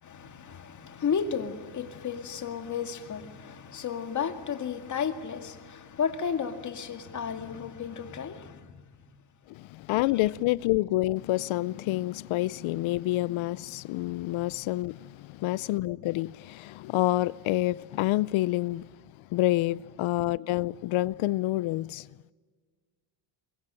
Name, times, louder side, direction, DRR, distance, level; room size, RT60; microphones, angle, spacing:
voice 1, 0.0-9.1, left 7 dB, 40° left, 2.2 m, -33 dB
voice 2, 9.5-18.9 19.3-22.1, left 17 dB, 80° left, 0.7 m, -28 dB
24.0 x 22.5 x 9.0 m
cardioid pair, 145°, 47 cm